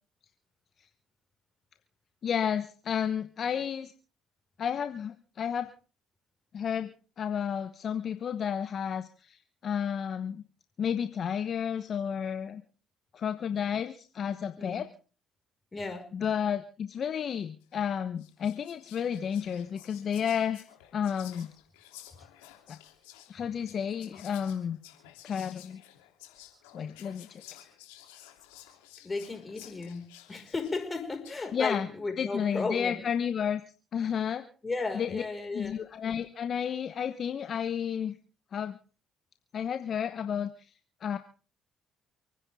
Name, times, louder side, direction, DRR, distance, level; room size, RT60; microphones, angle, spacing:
voice 1, 2.2-3.9 4.6-5.7 6.5-10.4 10.8-12.6 13.1-14.9 16.1-20.7 20.9-21.5 22.7-22.8 23.3-24.8 25.2-25.8 26.7-27.4 31.5-31.9 32.2-33.6 33.9-34.5 34.9-35.2 35.5-38.1 38.5-38.8 39.5-40.5 41.0-41.2, left 8 dB, 55° left, 10 dB, 1.1 m, -31 dB
voice 2, 15.7-16.1 23.4-23.5 29.0-33.0 34.6-35.8, left 3 dB, 25° left, 6 dB, 5.3 m, -35 dB
Whispering, 17.6-17.8 18.2-31.5, left 13 dB, 85° left, 3.1 m, -53 dB
29.5 x 10.0 x 3.6 m, 0.36 s
hypercardioid pair, 55°, 0 cm